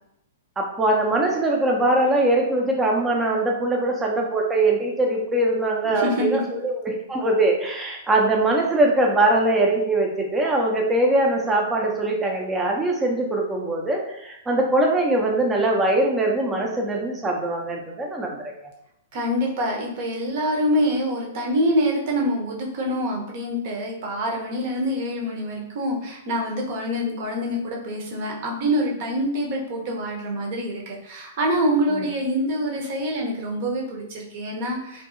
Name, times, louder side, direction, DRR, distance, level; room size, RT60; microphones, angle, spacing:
voice 1, 0.6-18.7 31.9-32.0, right 2 dB, 15° right, 0 dB, 0.5 m, -22 dB
voice 2, 5.9-6.2 19.1-35.1, equal, 45° right, 0 dB, 0.7 m, -25 dB
2.6 x 2.6 x 2.4 m, 0.79 s
figure-of-eight pair, 105°, 0 cm